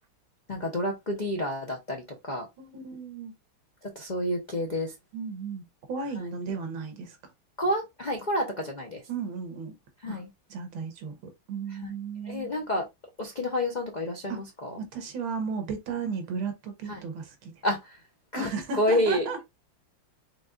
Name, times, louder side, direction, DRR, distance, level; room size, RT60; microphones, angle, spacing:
voice 1, 0.5-2.5 3.9-4.9 7.6-9.0 10.0-10.3 11.8-11.9 12.2-12.9 13.2-14.7 16.9-17.0 17.6-17.9 18.3-18.5 18.8-19.3, left 1 dB, 70° left, 0.4 m, -29 dB
voice 2, 2.6-3.3 5.1-7.2 9.1-9.7 10.1-10.2 10.5-12.5 14.3-14.4 14.9-17.5 18.3-19.4, right 5 dB, 85° right, 1.9 m, -35 dB
5.2 x 3.9 x 2.4 m
omnidirectional pair, 2.2 m